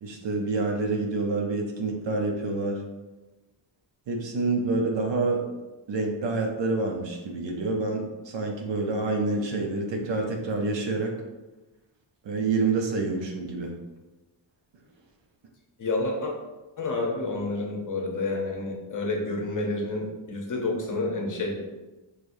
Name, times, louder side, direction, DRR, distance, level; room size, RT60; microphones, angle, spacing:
voice 1, 0.0-2.8 4.1-5.4 5.9-11.1 12.2-13.7, right 3 dB, 75° right, 2 dB, 0.8 m, -27 dB
voice 2, 15.8-16.3 16.8-21.6, left 2 dB, 45° left, 0 dB, 0.8 m, -29 dB
4.8 x 3.2 x 2.6 m, 1.1 s
wide cardioid pair, 130°, 45 cm